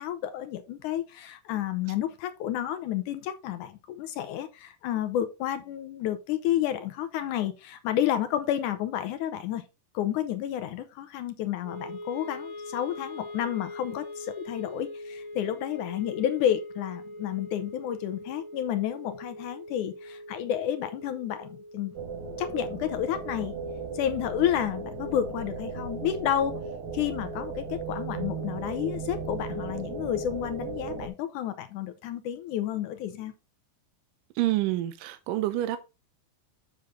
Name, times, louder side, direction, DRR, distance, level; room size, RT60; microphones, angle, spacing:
voice 1, 0.0-9.6 9.9-22.0 22.4-23.5 23.9-26.6 26.9-33.3, left 11 dB, 75° left, 1.9 m, -30 dB
Wind instrument woodwind instrument, 11.6-23.9, left 1 dB, 35° left, 1.1 m, -43 dB
sound 1, 22.0-31.1, right 4 dB, 60° right, 2.4 m, -36 dB
voice 2, 34.4-35.8, right 15 dB, 75° right, 2.1 m, -27 dB
8.2 x 6.6 x 3.7 m
omnidirectional pair, 4.2 m